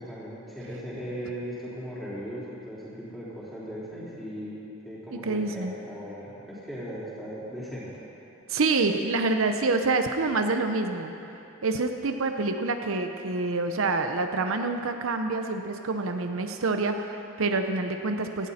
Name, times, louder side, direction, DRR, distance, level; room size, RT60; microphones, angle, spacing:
voice 1, 0.0-4.6 4.8-8.0, equal, ahead, -10 dB, 4.2 m, -38 dB
voice 2, 5.1-5.7 8.5-11.1 11.6-18.5, right 3 dB, 75° right, 6 dB, 0.7 m, -27 dB
18.0 x 14.5 x 4.3 m, 2.9 s
head